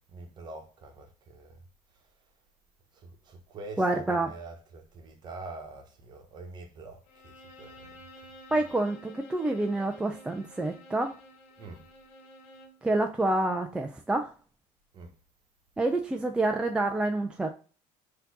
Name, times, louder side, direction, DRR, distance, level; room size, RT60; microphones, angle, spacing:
voice 1, 0.1-1.6 3.3-7.3 7.6-7.9 11.6-11.8 14.9-15.1, right 3 dB, 35° right, 1.0 m, -45 dB
voice 2, 3.8-4.3 8.5-11.1 12.8-14.3 15.8-17.5, right 2 dB, 10° right, 0.3 m, -28 dB
Bowed string instrument, 7.1-12.8, equal, 90° left, 1.1 m, -51 dB
4.3 x 2.8 x 3.9 m
cardioid pair, 160°, 12 cm